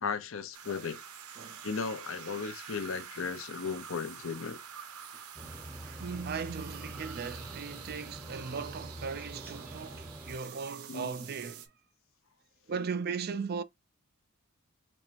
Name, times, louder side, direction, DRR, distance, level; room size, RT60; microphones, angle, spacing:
voice 1, 0.0-1.0 1.6-4.6 10.9-11.1, left 5 dB, 60° left, 0.6 m, -36 dB
sound 1, 0.5-11.7, right 7 dB, 90° right, 0.8 m, -47 dB
sound 2, 5.4-10.4, right 1 dB, 10° right, 0.7 m, -45 dB
voice 2, 5.8-11.7 12.7-13.6, right 5 dB, 45° right, 0.4 m, -38 dB
4.3 x 3.2 x 2.5 m
head